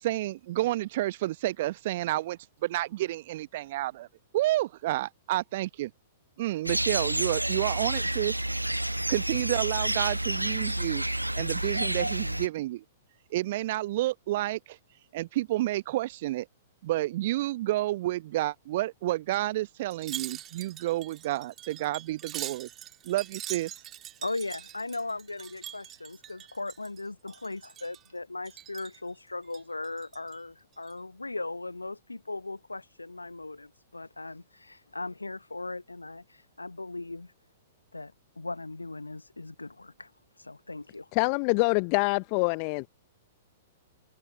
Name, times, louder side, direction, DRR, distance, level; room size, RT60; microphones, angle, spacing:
voice 1, 0.0-4.1 4.3-5.9 6.4-8.4 9.1-11.1 11.4-12.8 13.3-14.8 15.1-16.5 16.8-22.7 23.0-23.7, right 16 dB, 50° right, 1.0 m, -30 dB
sound 1, 6.6-12.5, right 1 dB, 90° right, 0.5 m, -29 dB
Wind chime, 19.9-27.0 27.3-28.1 28.4-29.0 29.4-30.3 30.7-30.9, right 12 dB, 25° right, 2.9 m, -43 dB
voice 2, 24.2-37.3 37.9-40.1 40.4-41.1, left 2 dB, 85° left, 1.0 m, -38 dB
voice 3, 41.1-42.9, left 39 dB, 40° left, 0.6 m, -25 dB
figure-of-eight pair, 105°, 0 cm